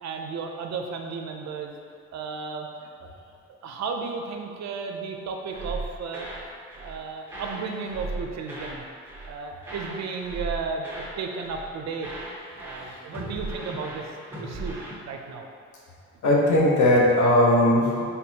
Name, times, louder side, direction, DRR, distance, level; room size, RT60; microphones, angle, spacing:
voice 1, 0.0-1.8 2.1-3.1 3.6-6.3 6.8-8.8 9.3-12.1 12.6-14.0 14.4-14.8 15.0-15.5, right 5 dB, 65° right, 3 dB, 0.5 m, -34 dB
sound 1, 5.5-6.4 6.7-7.0 7.3-8.8 9.0-9.3 9.6-11.2 11.4-11.7 12.0-14.9, right 2 dB, 5° right, 1.0 m, -37 dB
voice 2, 16.2-18.0, left 1 dB, 75° left, -3 dB, 0.9 m, -18 dB
4.3 x 3.5 x 2.8 m, 2.3 s
cardioid pair, 90°, 30 cm